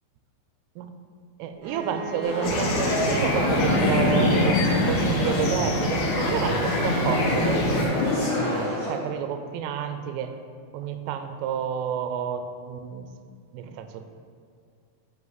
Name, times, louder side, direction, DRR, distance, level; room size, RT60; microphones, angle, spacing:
voice 1, 1.4-10.3 10.7-13.1 13.5-14.2, right 8 dB, 85° right, 7 dB, 3.1 m, -30 dB
Bowed string instrument, 1.6-5.3, right 2 dB, 65° right, 1.9 m, -40 dB
sound 1, 2.2-9.0, left 1 dB, 45° left, 1.8 m, -27 dB
sound 2, 2.4-7.9, left 2 dB, 80° left, 3.3 m, -25 dB
9.7 x 5.1 x 4.0 m, 2.2 s
omnidirectional pair, 5.6 m